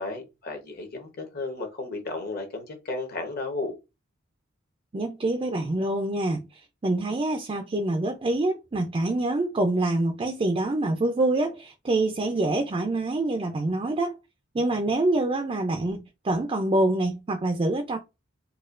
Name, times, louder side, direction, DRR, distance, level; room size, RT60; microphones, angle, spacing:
voice 1, 0.0-3.8, left 3 dB, 50° left, 1.0 m, -34 dB
voice 2, 4.9-14.2 14.5-18.0, right 2 dB, 25° right, 0.4 m, -26 dB
4.1 x 2.3 x 2.4 m
head